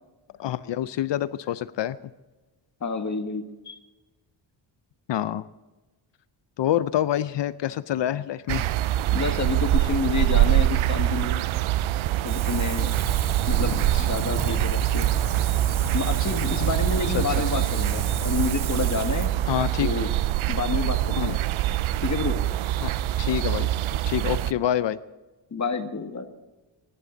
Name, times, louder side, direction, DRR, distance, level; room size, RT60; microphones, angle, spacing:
voice 1, 0.4-2.0 5.1-5.4 6.6-8.7 13.7-14.1 16.5-16.7 17.1-17.2 17.5-17.7 19.5-19.9 21.2-21.3 22.8-22.9 23.2-23.7 24.1-25.0, left 11 dB, 65° left, 15 dB, 0.6 m, -27 dB
voice 2, 2.8-3.8 9.1-11.4 12.2-13.0 13.5-15.1 15.9-19.3 19.8-20.1 20.5-21.4 22.0-22.4 25.5-26.3, left 4 dB, 35° left, 6 dB, 1.8 m, -29 dB
sound 1, 8.5-24.5, right 14 dB, 85° right, 0.6 m, -24 dB
Wind, 12.3-19.3, right 5 dB, 65° right, 3.6 m, -32 dB
23.5 x 11.0 x 3.9 m, 1.2 s
cardioid pair, 100°, 47 cm